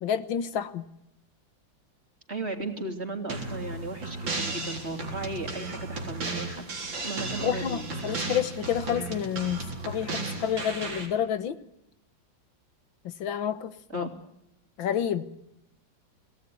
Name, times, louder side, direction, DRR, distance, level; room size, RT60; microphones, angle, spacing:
voice 1, 0.0-0.9 7.4-11.6 13.0-14.1 14.8-15.2, left 9 dB, 90° left, 14 dB, 2.0 m, -29 dB
voice 2, 2.3-6.7 7.0-7.9 13.9-14.1, right 2 dB, 35° right, 5 dB, 3.6 m, -35 dB
sound 1, 3.3-11.1, right 3 dB, 90° right, 4.7 m, -34 dB
26.5 x 18.0 x 9.6 m, 0.86 s
omnidirectional pair, 2.1 m